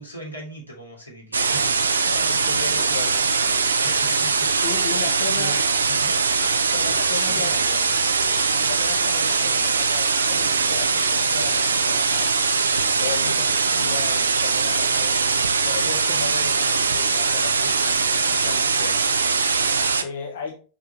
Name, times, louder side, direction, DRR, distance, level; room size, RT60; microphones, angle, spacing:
voice 1, 0.0-1.8 3.8-6.2 6.9-7.9, right 1 dB, 90° left, -3 dB, 3.0 m, -39 dB
sound 1, 1.3-20.0, right 4 dB, 75° right, 0.7 m, -21 dB
voice 2, 1.5-3.2 4.6-5.6 6.7-7.6 8.6-12.3 13.0-15.4 15.6-17.8 18.3-19.0 20.0-20.6, left 6 dB, 60° left, 1 dB, 1.2 m, -35 dB
6.2 x 6.1 x 3.3 m, 0.36 s
figure-of-eight pair, 90°, 0 cm